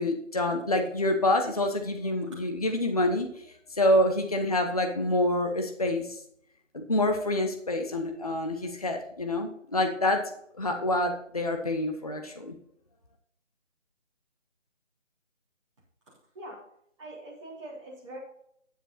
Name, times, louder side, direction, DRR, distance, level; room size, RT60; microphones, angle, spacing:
voice 1, 0.0-3.3 3.7-6.1 6.7-10.2 10.5-12.6, left 1 dB, 30° left, 4 dB, 0.9 m, -27 dB
voice 2, 17.0-18.2, right 1 dB, 25° right, -7 dB, 3.7 m, -43 dB
9.7 x 7.7 x 4.2 m, 0.69 s
figure-of-eight pair, 160°, 38 cm